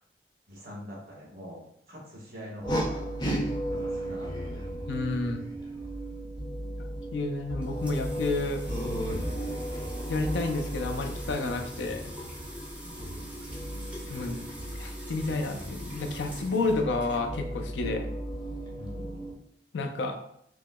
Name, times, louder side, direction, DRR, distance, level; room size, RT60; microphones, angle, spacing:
voice 1, 0.5-1.6 1.9-3.1 3.7-4.6 6.1-6.3 12.8-13.3 18.7-19.3, equal, 55° right, -3 dB, 1.0 m, -44 dB
sound 1, 2.6-19.3, right 1 dB, 25° left, 0.6 m, -35 dB
voice 2, 4.9-5.4 7.1-8.6 10.1-12.0 14.1-14.5 14.8-18.1 19.7-20.1, left 3 dB, 90° left, 5 dB, 0.5 m, -30 dB
sound 2, 7.6-17.6, equal, 10° right, 0.9 m, -45 dB
4.6 x 2.0 x 2.2 m, 0.72 s
head